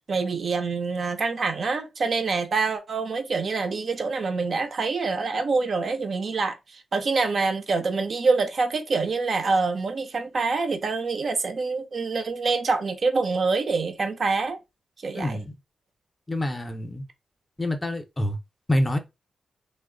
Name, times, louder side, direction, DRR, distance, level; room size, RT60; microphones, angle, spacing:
voice 1, 0.1-14.6 15.0-15.4, right 4 dB, 50° right, 0.5 m, -26 dB
voice 2, 15.1-15.5 16.3-17.0 17.6-18.4 18.7-19.0, left 1 dB, 20° left, 0.5 m, -26 dB
3.0 x 2.0 x 3.7 m
wide cardioid pair, 125°, 0 cm